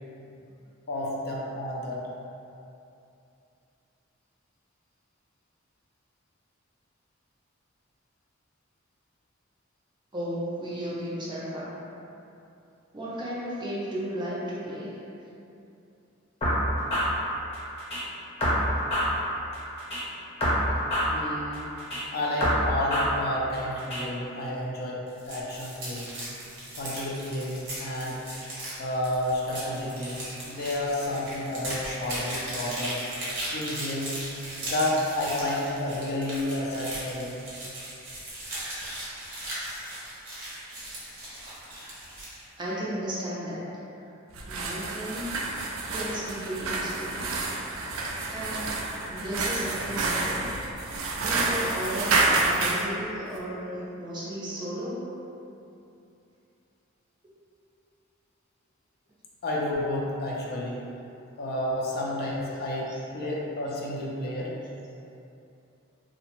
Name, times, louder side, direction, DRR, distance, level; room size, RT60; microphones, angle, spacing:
voice 1, 0.9-2.0 21.1-21.7 22.1-26.1 26.7-28.2 28.8-33.0 33.5-34.1 34.6-37.3 59.4-60.8 61.4-64.5, left 1 dB, 50° left, -4 dB, 0.4 m, -31 dB
voice 2, 10.1-11.7 12.9-15.0 42.6-43.6 44.5-45.4 45.9-47.3 48.3-50.6 51.2-55.0, equal, 25° right, -7 dB, 0.5 m, -34 dB
sound 1, 16.4-18.0 18.4-20.0 20.4-22.0 22.4-24.0, equal, 30° left, 0.8 m, -27 dB
sound 2, 25.1-42.4, right 1 dB, 65° right, 0.9 m, -37 dB
sound 3, 44.3-52.9, right 3 dB, 85° right, 0.3 m, -29 dB
2.7 x 2.1 x 2.9 m, 2.7 s
head